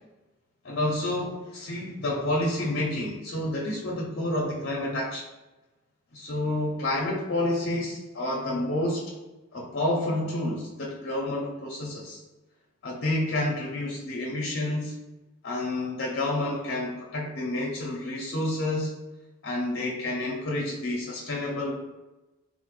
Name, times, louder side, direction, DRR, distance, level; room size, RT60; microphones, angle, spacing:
voice 1, 0.6-5.2 6.1-9.1 9.5-12.2 12.8-14.9 15.4-18.9 19.4-21.7, left 1 dB, 60° left, -3 dB, 0.6 m, -29 dB
4.2 x 2.0 x 3.1 m, 1.1 s
head